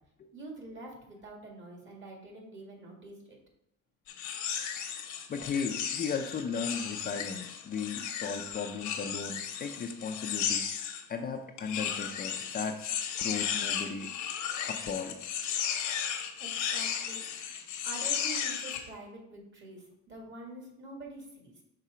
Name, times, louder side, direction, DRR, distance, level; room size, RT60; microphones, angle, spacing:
voice 1, 0.3-3.4 16.4-17.2 17.8-21.6, right 2 dB, 40° right, 0 dB, 1.8 m, -46 dB
sound 1, 4.1-11.0 11.6-18.8, left 8 dB, 75° left, 1.0 m, -35 dB
voice 2, 5.3-10.6 11.1-14.1 14.7-15.2, left 5 dB, 30° left, 4 dB, 0.5 m, -36 dB
5.6 x 4.0 x 4.9 m, 0.82 s
cardioid pair, 130°, 30 cm